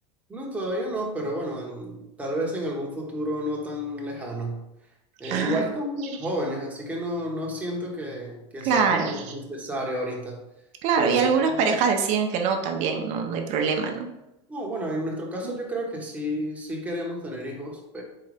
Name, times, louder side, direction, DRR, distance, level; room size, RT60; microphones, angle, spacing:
voice 1, 0.3-4.6 5.2-10.4 11.0-11.6 14.5-18.0, equal, 10° right, -2 dB, 1.0 m, -31 dB
voice 2, 5.2-5.6 8.7-9.2 10.8-14.1, right 6 dB, 50° right, 4 dB, 0.7 m, -23 dB
4.2 x 3.8 x 3.4 m, 0.91 s
supercardioid pair, 130°, 15 cm